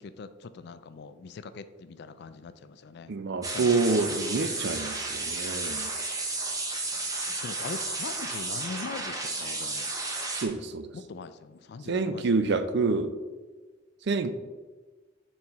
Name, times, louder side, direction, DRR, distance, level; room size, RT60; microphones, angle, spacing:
voice 1, 0.0-3.1 3.5-3.8 6.9-9.9 10.9-12.3, left 4 dB, 60° left, 12 dB, 0.4 m, -41 dB
voice 2, 3.1-5.9 10.3-10.9 11.9-13.1 14.1-14.3, right 3 dB, 60° right, 10 dB, 0.5 m, -27 dB
sound 1, 3.4-10.4, right 2 dB, 20° right, 0.9 m, -33 dB
4.6 x 4.2 x 5.2 m, 1.3 s
head